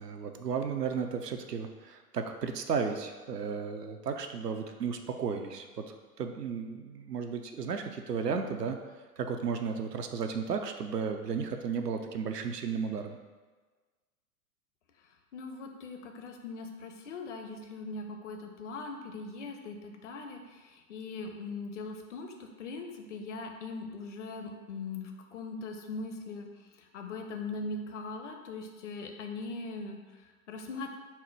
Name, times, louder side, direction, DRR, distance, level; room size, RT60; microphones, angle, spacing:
voice 1, 0.0-8.8 9.2-13.2, right 6 dB, 85° right, 5 dB, 0.6 m, -34 dB
voice 2, 15.3-30.9, left 3 dB, 50° left, 4 dB, 0.6 m, -40 dB
4.3 x 2.0 x 4.5 m, 1.4 s
figure-of-eight pair, 105°, 47 cm